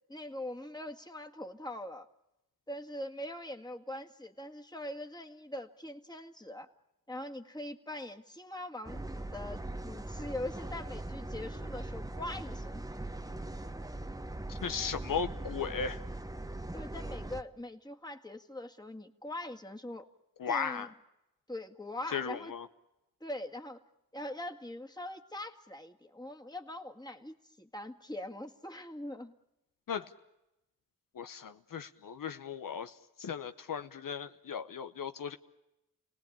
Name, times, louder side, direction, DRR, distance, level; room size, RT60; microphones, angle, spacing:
voice 1, 0.1-2.1 2.7-6.7 7.1-12.8 16.7-20.0 20.5-20.9 21.5-22.5 23.2-23.8 24.1-29.3, left 1 dB, 10° left, 3 dB, 1.9 m, -42 dB
sound 1, 8.8-17.4, right 1 dB, 10° right, 1.0 m, -40 dB
voice 2, 14.5-16.0 20.4-20.9 22.1-22.7 29.9-30.1 31.1-35.4, left 6 dB, 75° left, 9 dB, 0.9 m, -36 dB
30.0 x 18.5 x 8.7 m, 0.93 s
cardioid pair, 55°, 33 cm